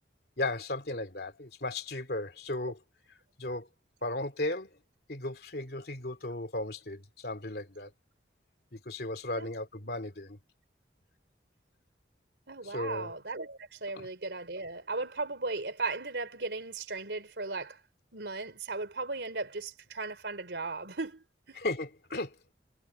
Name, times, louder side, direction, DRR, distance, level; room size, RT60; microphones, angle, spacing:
voice 1, 0.4-2.8 3.4-3.7 4.0-4.7 5.1-7.9 8.7-10.4 12.6-13.1 13.9-14.1 21.6-22.5, left 2 dB, 65° left, 2.6 m, -35 dB
voice 2, 12.5-17.8 18.1-21.6, right 3 dB, 85° right, 3.5 m, -37 dB
head